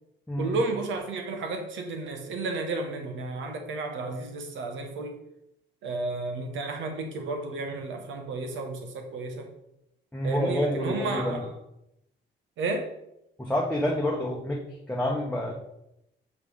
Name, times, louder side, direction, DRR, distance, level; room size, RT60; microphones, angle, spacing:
voice 1, 0.4-5.2 5.8-9.5 10.2-11.5 12.6-12.9, right 3 dB, 75° right, 4 dB, 1.1 m, -32 dB
voice 2, 10.1-11.4 13.4-14.6 14.9-15.5, left 1 dB, 5° left, -3 dB, 1.0 m, -28 dB
7.4 x 3.2 x 4.9 m, 0.83 s
cardioid pair, 90°, 20 cm